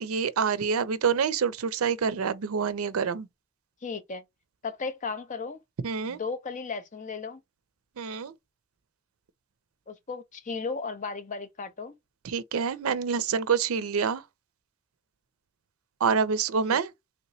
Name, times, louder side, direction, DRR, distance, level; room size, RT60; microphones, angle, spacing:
voice 1, 0.0-3.3 5.8-6.2 8.0-8.3 12.2-14.2 16.0-16.9, right 6 dB, 80° right, 0.5 m, -27 dB
voice 2, 3.8-4.2 4.6-5.6 6.1-7.4 9.9-11.9 16.7-16.8, left 4 dB, 35° left, 0.6 m, -35 dB
3.2 x 2.9 x 2.7 m
head